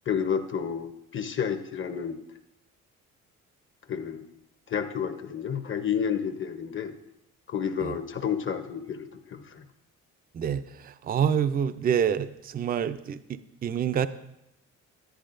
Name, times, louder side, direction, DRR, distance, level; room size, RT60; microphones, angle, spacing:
voice 1, 0.1-2.2 3.9-4.3 4.7-6.9 7.5-9.6, left 7 dB, 40° left, 8 dB, 0.8 m, -30 dB
voice 2, 10.3-14.1, right 8 dB, 30° right, 12 dB, 0.4 m, -27 dB
10.5 x 10.0 x 2.6 m, 0.84 s
cardioid pair, 90°, 30 cm